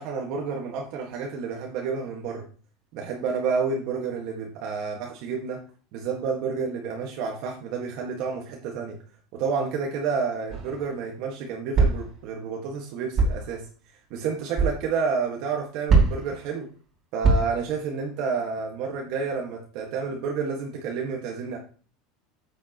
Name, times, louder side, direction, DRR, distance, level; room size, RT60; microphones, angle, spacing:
voice 1, 0.0-2.4 2.9-5.6 5.9-9.0 9.3-13.7 14.1-16.7 17.1-21.6, right 5 dB, 55° right, 0 dB, 1.6 m, -30 dB
sound 1, 10.5-10.9 11.7-12.1 13.2-13.5 14.6-14.8 15.9-16.4 17.2-17.7, right 3 dB, 30° right, 2.6 m, -21 dB
9.3 x 7.4 x 3.0 m, 0.40 s
supercardioid pair, 155°, 0 cm